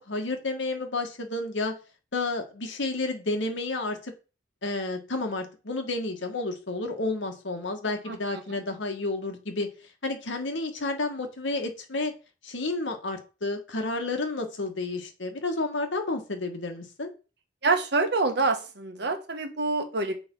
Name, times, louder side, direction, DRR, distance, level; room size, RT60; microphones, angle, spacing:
voice 1, 0.1-1.7 2.1-4.1 4.6-9.7 10.0-12.1 12.4-17.1, left 2 dB, 85° left, 4 dB, 1.5 m, -31 dB
voice 2, 17.6-20.2, right 3 dB, 60° right, 6 dB, 1.3 m, -26 dB
6.9 x 4.2 x 5.4 m, 0.33 s
head